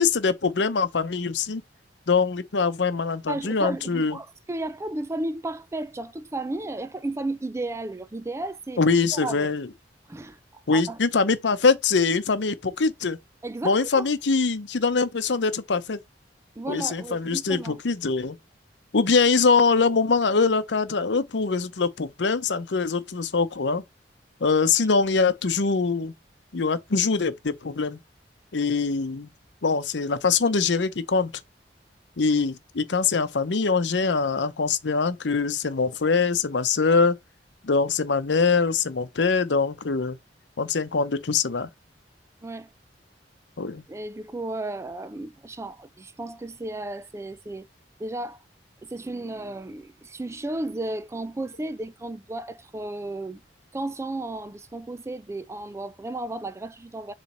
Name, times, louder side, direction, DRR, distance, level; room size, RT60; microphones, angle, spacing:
voice 1, 0.0-1.6 2.1-4.2 8.8-9.7 10.7-13.2 13.6-16.0 16.7-18.4 18.9-23.8 24.4-26.1 26.5-28.0 28.5-29.3 29.6-31.3 32.2-37.2 37.6-40.2 40.6-41.7 43.6-43.8, left 4 dB, 85° left, 0.7 m, -23 dB
voice 2, 3.3-8.8 9.1-9.5 10.1-10.4 10.7-11.0 13.4-14.1 16.6-17.8 42.4-42.7 43.9-47.7 48.0-48.4 48.8-53.4 53.7-57.1, right 2 dB, 15° right, 0.4 m, -33 dB
7.2 x 3.2 x 4.3 m
head